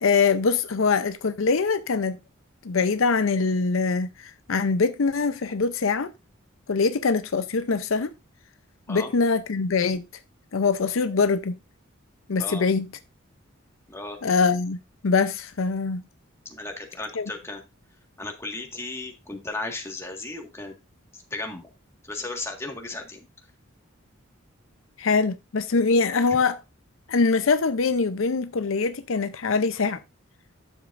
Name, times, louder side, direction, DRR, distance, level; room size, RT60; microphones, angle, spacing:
voice 1, 0.0-2.2 2.6-4.1 4.5-6.1 6.7-8.1 8.9-10.0 10.5-11.6 12.3-12.9 14.2-16.0 17.2-17.3 25.0-26.6 27.1-30.0, left 4 dB, 75° left, 0.6 m, -23 dB
voice 2, 13.9-14.2 16.4-17.6 18.2-20.7 21.1-21.7 22.1-23.3 26.3-26.4, left 2 dB, 15° left, 1.6 m, -35 dB
11.5 x 7.3 x 2.5 m
head